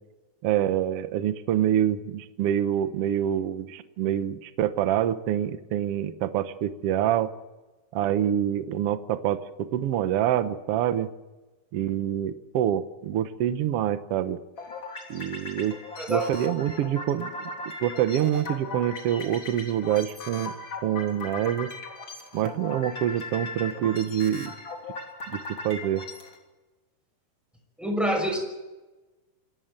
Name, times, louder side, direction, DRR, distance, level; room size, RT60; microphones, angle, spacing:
voice 1, 0.4-7.3 7.9-11.1 11.7-14.4 15.1-15.8 16.1-17.5 17.8-20.5 20.8-21.7 22.3-24.5 25.3-25.4 25.6-26.0, right 11 dB, 85° right, 12 dB, 1.3 m, -26 dB
sound 1, 14.6-26.4, left 3 dB, 35° left, 3.9 m, -38 dB
voice 2, 27.8-28.4, right 1 dB, ahead, 3 dB, 5.6 m, -26 dB
27.5 x 14.5 x 9.0 m, 1.1 s
omnidirectional pair, 4.2 m